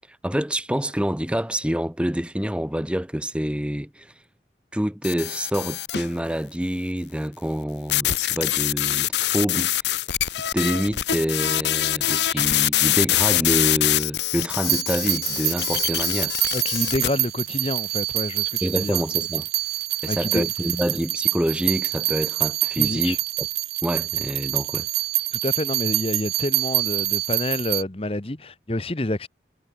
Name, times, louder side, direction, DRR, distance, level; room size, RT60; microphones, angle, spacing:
voice 1, 0.2-4.1 4.7-9.1 9.3-9.7 10.5-16.3 18.6-19.5 20.0-23.5 23.8-24.9, equal, 5° right, 0.9 m, -27 dB
sound 1, 5.0-6.1 7.9-17.1, left 13 dB, 80° left, 0.9 m, -24 dB
sound 2, 14.6-27.8, right 19 dB, 60° right, 0.4 m, -26 dB
voice 2, 16.5-19.0 20.1-20.4 22.8-23.2 25.3-29.3, left 1 dB, 35° left, 1.1 m, -28 dB
head